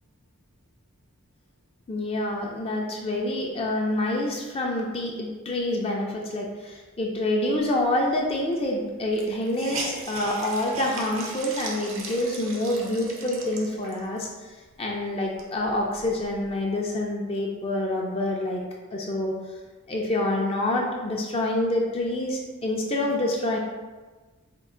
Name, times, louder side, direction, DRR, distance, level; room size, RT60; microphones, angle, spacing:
voice 1, 1.9-14.5 14.8-19.4 19.9-23.6, left 1 dB, 25° left, -1 dB, 0.4 m, -27 dB
Hiss, 8.3-8.4 8.6-8.7 9.1-14.2 14.7-14.8 15.2-16.6, right 3 dB, 65° right, 0.6 m, -38 dB
4.4 x 2.4 x 3.7 m, 1.3 s
head